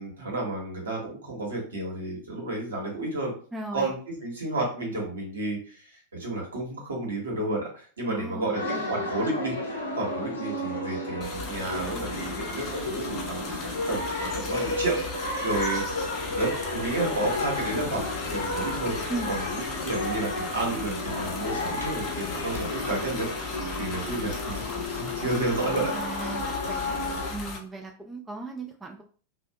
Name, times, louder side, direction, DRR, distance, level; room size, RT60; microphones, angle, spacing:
voice 1, 0.0-3.3 3.7-15.8 16.3-26.1, right 2 dB, 70° right, -2 dB, 1.0 m, -31 dB
voice 2, 3.5-3.9 8.1-9.1 19.1-19.3 25.9-27.0 27.3-29.0, right 2 dB, 10° right, 1 dB, 0.4 m, -37 dB
sound 1, 8.5-27.3, left 2 dB, 75° left, 0.6 m, -32 dB
sound 2, 11.2-27.6, left 4 dB, 30° left, 0.6 m, -37 dB
2.5 x 2.2 x 2.2 m, 0.42 s
figure-of-eight pair, 90°, 0 cm